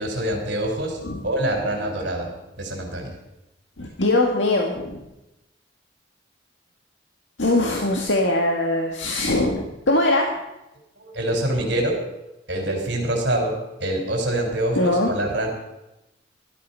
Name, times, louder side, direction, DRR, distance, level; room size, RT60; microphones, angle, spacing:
voice 1, 0.0-2.3 2.6-3.2 11.0-12.0 12.5-15.5, right 1 dB, 65° right, 1 dB, 3.9 m, -25 dB
voice 2, 3.8-5.0 7.4-10.3 14.8-15.1, left 2 dB, 85° left, 1 dB, 1.9 m, -21 dB
17.0 x 13.0 x 5.7 m, 0.94 s
head